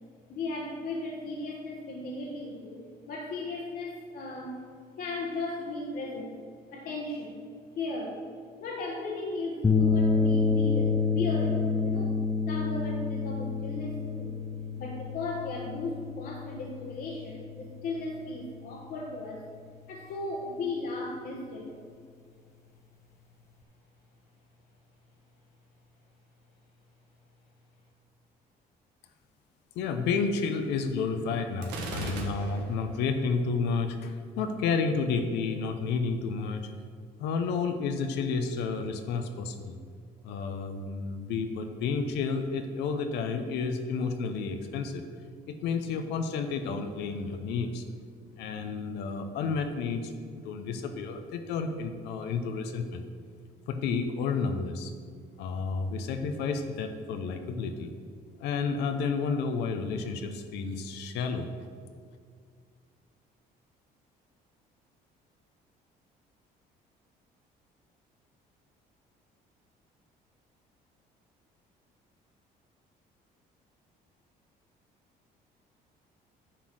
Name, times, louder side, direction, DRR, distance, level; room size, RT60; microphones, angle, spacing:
voice 1, 0.3-2.8 3.1-4.6 5.0-6.3 6.7-7.5 7.7-8.2 8.6-12.1 12.5-14.3 14.8-19.5 19.9-21.7, left 2 dB, 60° left, -2 dB, 1.2 m, -36 dB
sound 1, 9.6-18.1, left 4 dB, 15° left, 0.5 m, -28 dB
voice 2, 29.8-36.7 37.2-39.8 40.2-47.8 48.4-53.0 53.7-54.9 55.4-57.9 58.4-61.5, left 4 dB, 85° left, 6 dB, 0.7 m, -31 dB
Gunshot gunfire, 31.6-32.9, right 2 dB, 85° right, 1.4 m, -37 dB
10.0 x 4.0 x 6.2 m, 2.1 s
cardioid pair, 110°, 17 cm